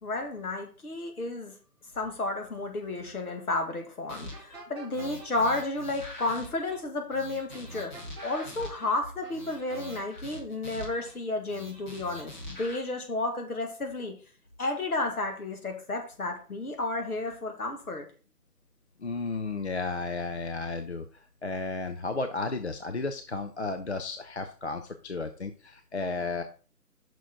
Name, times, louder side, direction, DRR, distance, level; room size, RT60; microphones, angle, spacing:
voice 1, 0.0-1.6 1.9-14.2 14.6-18.1, left 2 dB, 65° left, 4 dB, 1.9 m, -32 dB
sound 1, 4.1-4.6 4.9-6.8 7.1-8.9 9.3-11.1 11.5-12.8, left 1 dB, 30° left, 1.6 m, -44 dB
sound 2, 4.1-5.5 7.5-8.9 9.2-10.0, right 3 dB, 15° right, 0.9 m, -48 dB
voice 2, 19.0-21.1 21.4-26.4, left 3 dB, 45° left, 7 dB, 0.5 m, -33 dB
6.0 x 4.7 x 4.7 m, 0.38 s
figure-of-eight pair, 155°, 48 cm